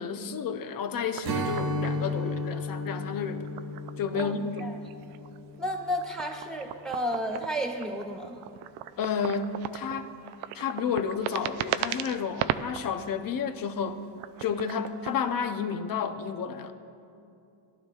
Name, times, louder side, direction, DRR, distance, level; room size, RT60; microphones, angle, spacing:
voice 1, 0.0-3.4 4.0-4.6 9.0-10.1 10.5-14.0 14.4-16.7, left 6 dB, 45° left, 8 dB, 0.8 m, -31 dB
sound 1, 1.1-2.4 3.3-4.6 4.9-12.9 13.4-15.2, right 12 dB, 80° right, 0.6 m, -36 dB
Strum, 1.2-6.7, left 1 dB, 50° right, 1.3 m, -34 dB
voice 2, 5.6-8.4, equal, ahead, 1 dB, 1.7 m, -32 dB
18.0 x 11.5 x 2.4 m, 2.6 s
cardioid pair, 105°, 50 cm